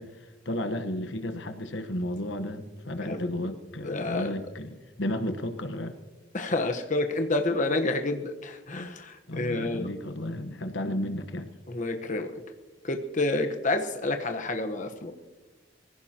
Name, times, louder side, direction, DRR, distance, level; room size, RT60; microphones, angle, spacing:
voice 1, 0.0-5.9 9.3-11.5, left 1 dB, 75° left, 9 dB, 1.2 m, -33 dB
voice 2, 3.8-4.3 6.3-9.9 11.7-12.3 12.8-15.1, left 2 dB, 45° left, 5 dB, 1.1 m, -29 dB
23.5 x 16.0 x 2.9 m, 1.2 s
head